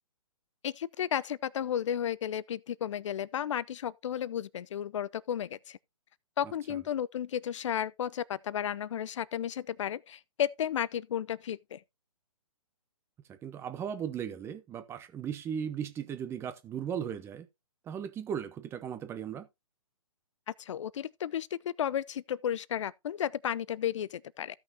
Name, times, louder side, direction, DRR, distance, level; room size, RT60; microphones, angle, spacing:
voice 1, 0.6-5.8 6.4-11.8 20.5-24.6, left 9 dB, 55° left, 0.6 m, -33 dB
voice 2, 13.3-17.5 17.8-19.5, right 8 dB, 15° right, 0.9 m, -37 dB
15.5 x 6.0 x 2.7 m
hypercardioid pair, 140°, 18 cm